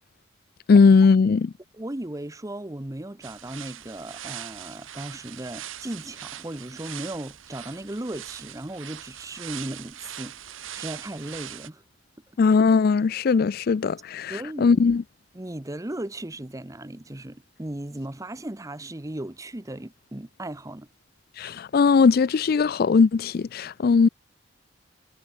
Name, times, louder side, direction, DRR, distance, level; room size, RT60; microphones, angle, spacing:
voice 1, 0.7-1.5 12.4-15.0 21.4-24.1, left 5 dB, 50° left, 0.4 m, -19 dB
voice 2, 1.7-11.8 14.3-14.8 15.3-20.9, right 1 dB, 15° right, 0.8 m, -36 dB
sound 1, 3.2-11.7, right 11 dB, 80° right, 1.5 m, -41 dB
head